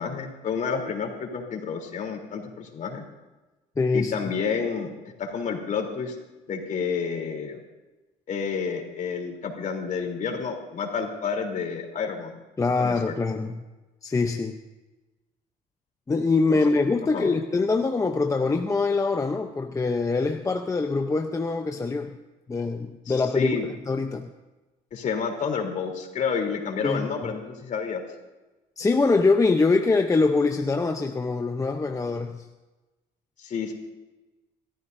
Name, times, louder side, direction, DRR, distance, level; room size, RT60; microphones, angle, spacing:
voice 1, 0.0-3.0 3.9-4.9 5.2-6.1 6.5-7.6 8.3-12.3 12.8-13.1 16.5-16.6 17.1-17.3 23.1-23.6 24.9-28.0 33.4-33.7, left 6 dB, 50° left, 2 dB, 3.4 m, -30 dB
voice 2, 3.8-4.1 12.6-13.6 14.0-14.6 16.1-22.2 22.5-24.3 26.8-27.3 28.8-32.5, left 3 dB, 20° left, 5 dB, 0.7 m, -24 dB
29.0 x 14.0 x 2.7 m, 1.1 s
cardioid pair, 110°, 17 cm